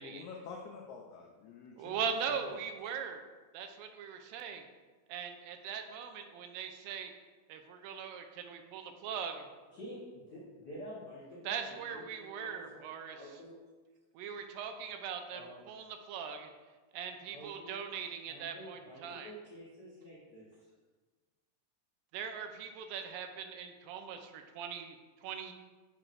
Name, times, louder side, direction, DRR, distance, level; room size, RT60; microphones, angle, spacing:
voice 1, 0.0-2.0 2.3-2.4, left 5 dB, 90° left, 0 dB, 1.6 m, -47 dB
voice 2, 1.7-3.2 3.5-4.7 5.1-7.1 7.5-9.5 11.5-13.2 14.1-16.5 16.9-19.3 22.1-25.5, right 7 dB, 85° right, 6 dB, 2.3 m, -40 dB
voice 3, 9.7-12.8 13.1-13.6 15.3-15.6 17.3-17.8 18.3-20.5, equal, 70° left, -10 dB, 1.0 m, -49 dB
6.9 x 5.7 x 2.5 m, 1.3 s
omnidirectional pair, 4.0 m